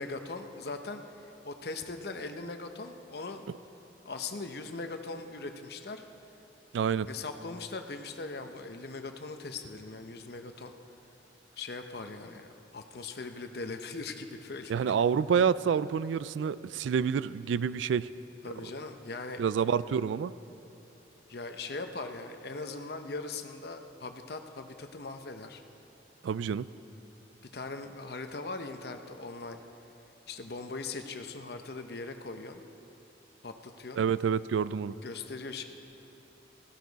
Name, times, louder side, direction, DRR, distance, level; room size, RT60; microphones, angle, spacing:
voice 1, 0.0-3.5 4.0-6.0 7.1-10.7 11.6-15.0 18.4-19.4 21.3-25.6 27.5-29.6 30.3-32.6 33.4-34.0 35.0-35.6, left 3 dB, 60° left, 7 dB, 0.8 m, -40 dB
voice 2, 6.7-7.1 14.7-18.1 19.4-20.3 26.2-26.7 34.0-34.9, right 7 dB, 85° right, 17 dB, 0.3 m, -28 dB
16.0 x 14.5 x 4.0 m, 2.9 s
head